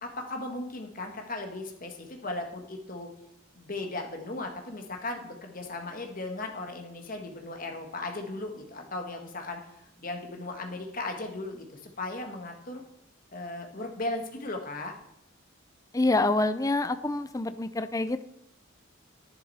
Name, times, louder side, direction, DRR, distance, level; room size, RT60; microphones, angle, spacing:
voice 1, 0.0-3.1 3.6-9.6 10.0-12.8 13.3-14.9, left 2 dB, 45° left, 3 dB, 1.7 m, -37 dB
voice 2, 15.9-18.2, left 2 dB, 15° left, 11 dB, 0.5 m, -26 dB
10.5 x 10.5 x 4.3 m, 0.78 s
head